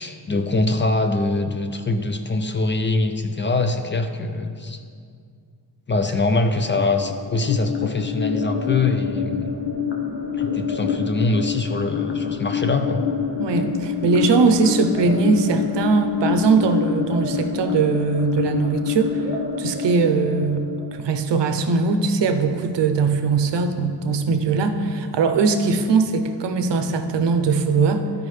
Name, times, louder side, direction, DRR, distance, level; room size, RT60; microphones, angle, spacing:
voice 1, 0.0-4.8 5.9-9.6 10.4-13.0, left 3 dB, 30° left, 7 dB, 0.4 m, -23 dB
sound 1, 6.6-21.6, left 7 dB, 85° left, 1.0 m, -27 dB
voice 2, 13.4-19.2 19.6-28.3, right 4 dB, 85° right, 7 dB, 0.7 m, -20 dB
12.5 x 5.1 x 3.2 m, 2.2 s
wide cardioid pair, 135°, 42 cm